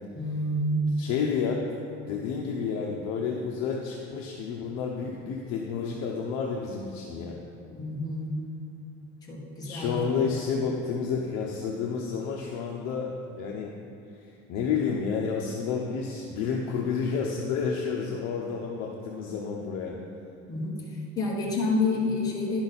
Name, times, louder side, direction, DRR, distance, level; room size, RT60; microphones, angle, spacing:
voice 1, 0.2-1.0 7.6-8.3 9.3-10.3 20.5-20.7 21.2-22.6, left 2 dB, 10° left, -5 dB, 1.1 m, -28 dB
voice 2, 1.0-1.6 2.0-7.4 9.6-13.8 14.5-20.0, left 5 dB, 65° left, -1 dB, 0.8 m, -30 dB
10.5 x 6.1 x 4.1 m, 2.5 s
cardioid pair, 165°, 30 cm